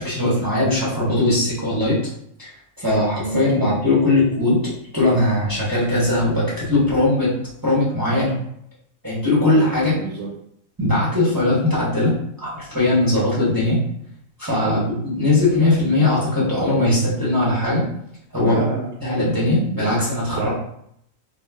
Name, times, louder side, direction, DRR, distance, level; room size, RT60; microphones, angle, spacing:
voice 1, 0.0-2.0 2.4-4.6 4.9-7.3 7.6-8.3 9.0-10.0 10.8-13.8 14.4-14.9 15.2-17.8 18.3-18.6 19.0-20.5, left 2 dB, 20° right, -8 dB, 0.7 m, -19 dB
voice 2, 3.2-3.7 9.9-10.3 14.6-14.8 18.4-18.9 20.3-20.5, right 3 dB, 75° right, -3 dB, 1.1 m, -28 dB
2.4 x 2.2 x 3.3 m, 0.70 s
omnidirectional pair, 1.5 m